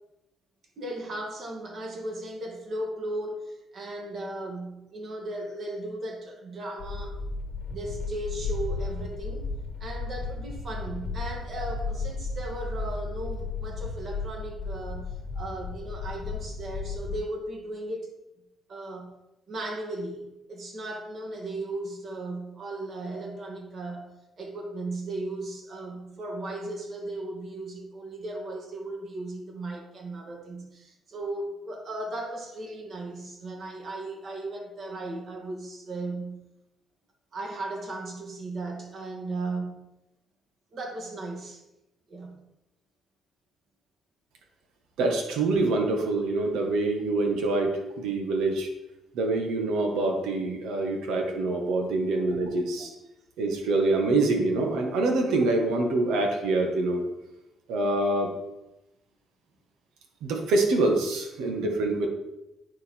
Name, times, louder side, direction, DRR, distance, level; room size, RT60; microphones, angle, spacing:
voice 1, 0.8-7.2 7.7-9.5 9.8-18.2 18.7-19.2 19.5-36.4 37.3-39.9 40.7-41.6 42.1-42.4 52.1-52.2, right 2 dB, 55° right, 2.0 m, -36 dB
sound 1, 6.8-17.2, left 4 dB, 65° left, 1.3 m, -34 dB
voice 2, 45.0-48.7 49.1-52.9 53.4-57.0 57.7-58.3 60.2-62.1, right 2 dB, 90° right, 1.4 m, -25 dB
9.5 x 5.0 x 4.4 m
cardioid pair, 90°, 0 cm